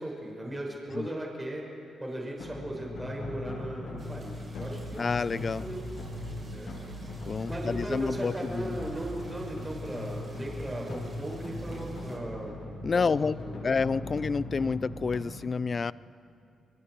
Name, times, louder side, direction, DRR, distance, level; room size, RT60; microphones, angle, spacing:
voice 1, 0.0-1.6 2.0-5.1 5.6-5.9 6.5-6.7 7.5-12.5 12.9-13.7, right 1 dB, 20° right, -1 dB, 5.7 m, -37 dB
sound 1, 2.4-15.2, left 1 dB, 75° left, 7.3 m, -39 dB
sound 2, 4.0-12.2, right 2 dB, 45° right, 7.6 m, -57 dB
voice 2, 5.0-5.7 7.3-8.8 12.8-13.4 13.6-15.9, left 5 dB, 45° left, 20 dB, 0.4 m, -29 dB
30.0 x 22.5 x 4.7 m, 2.6 s
cardioid pair, 65°, 0 cm